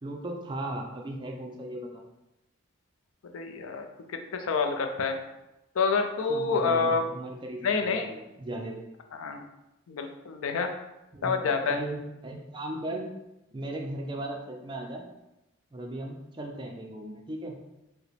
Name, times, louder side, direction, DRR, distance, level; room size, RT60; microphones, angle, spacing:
voice 1, 0.0-2.0 6.3-8.8 11.1-13.1 13.5-15.1 15.7-17.6, right 1 dB, 20° right, 1 dB, 0.4 m, -37 dB
voice 2, 3.3-5.2 5.8-7.0 7.6-8.1 9.1-9.4 9.9-10.7 11.2-11.8, left 4 dB, 80° left, 5 dB, 0.4 m, -28 dB
4.7 x 2.1 x 3.3 m, 0.94 s
head